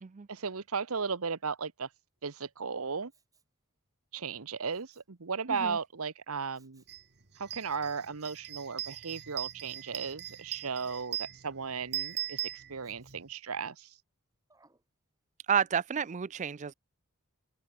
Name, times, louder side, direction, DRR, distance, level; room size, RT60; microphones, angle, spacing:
voice 1, 0.3-1.9 2.2-3.1 4.1-6.8 7.4-13.9, right 5 dB, 70° right, 1.0 m, -36 dB
Respiratory sounds, 3.1-3.6 4.7-5.2 6.5-7.0 8.0-8.4 9.1-9.5 11.9-12.3 12.8-13.4 14.5-14.9 15.4-15.5, right 4 dB, 15° right, 4.1 m, -69 dB
sound 1, 6.9-7.0 7.4-13.2, right 12 dB, 50° right, 1.7 m, -40 dB
voice 2, 15.5-16.7, right 7 dB, 35° right, 0.4 m, -30 dB
open air
head